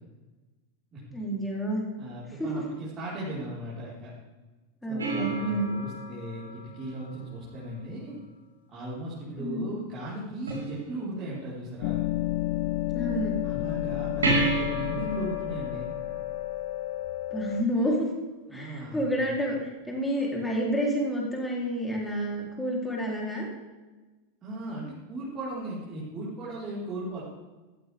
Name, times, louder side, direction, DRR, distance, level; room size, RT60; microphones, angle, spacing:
voice 1, 1.1-1.8 2.3-2.6 4.8-5.8 9.4-9.7 12.9-13.3 17.3-18.1 18.5-23.5, equal, 5° left, -2 dB, 3.9 m, -29 dB
voice 2, 2.0-4.1 4.9-8.2 8.7-12.0 13.4-15.9 18.5-19.3 24.4-27.2, right 1 dB, 25° right, -9 dB, 5.1 m, -37 dB
sound 1, 5.0-7.6 10.5-11.4 14.2-17.1 20.2-20.3, right 2 dB, 70° right, 4.6 m, -32 dB
sound 2, 11.8-17.6, left 16 dB, 45° left, 0.6 m, -31 dB
15.5 x 15.0 x 3.7 m, 1.2 s
figure-of-eight pair, 90°, 0 cm